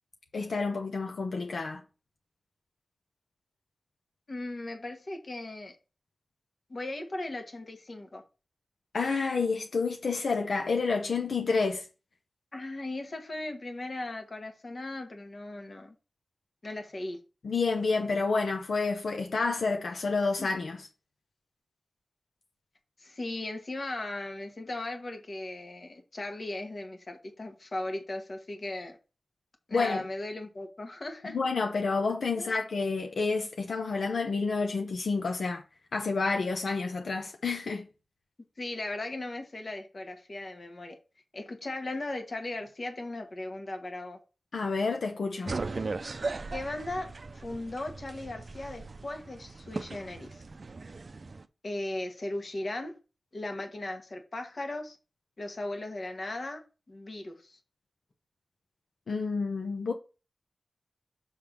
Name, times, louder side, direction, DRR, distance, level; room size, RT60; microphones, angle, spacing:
voice 1, 0.3-1.8 8.9-11.8 17.4-20.8 29.7-30.0 31.3-35.6 35.9-37.8 44.5-45.6 59.1-59.9, left 4 dB, 85° left, 0.8 m, -29 dB
voice 2, 4.3-5.8 6.7-8.2 12.5-15.9 16.6-17.2 20.4-20.5 23.0-29.0 29.7-31.4 32.3-32.5 38.6-41.0 41.3-44.2 46.5-50.4 51.6-53.0 53.3-55.0 55.4-56.6 56.9-57.6, left 2 dB, 50° left, 1.4 m, -37 dB
sound 1, 45.5-51.4, right 3 dB, 55° right, 0.5 m, -38 dB
6.6 x 3.5 x 6.0 m
wide cardioid pair, 75°, 0 cm